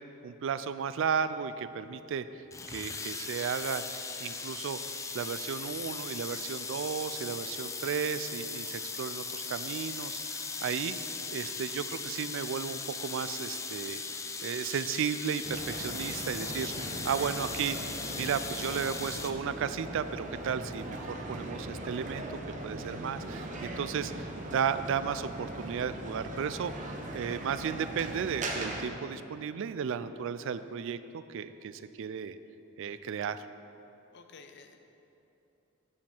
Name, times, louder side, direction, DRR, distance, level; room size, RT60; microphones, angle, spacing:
voice 1, 0.2-2.3 2.7-3.8 4.2-4.8 5.1-11.0 11.3-14.0 14.4-16.7 17.0-22.3 22.6-32.4 32.8-33.4, right 7 dB, 65° right, 13 dB, 0.3 m, -34 dB
sound 1, 2.5-19.3, left 4 dB, 15° left, 0.4 m, -38 dB
sound 2, 15.4-28.9, right 1 dB, 40° right, 0.9 m, -40 dB
voice 2, 16.3-17.3 34.1-34.8, left 4 dB, 55° left, 6 dB, 0.6 m, -52 dB
8.6 x 7.2 x 4.4 m, 2.9 s
head